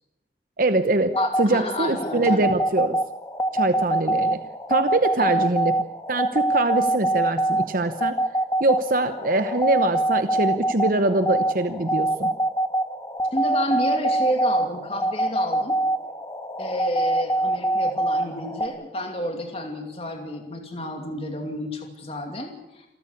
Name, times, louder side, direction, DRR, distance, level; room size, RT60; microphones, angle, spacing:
voice 1, 0.6-3.0 3.5-4.4 4.7-5.7 6.1-8.1 8.6-12.3, right 2 dB, 50° right, 9 dB, 0.9 m, -23 dB
sound 1, 1.1-18.7, right 1 dB, 15° left, 1.8 m, -25 dB
voice 2, 1.2-2.5 5.2-5.5 13.3-15.8 16.6-22.8, left 1 dB, 30° left, 3 dB, 2.7 m, -30 dB
27.5 x 14.0 x 8.5 m, 0.96 s
head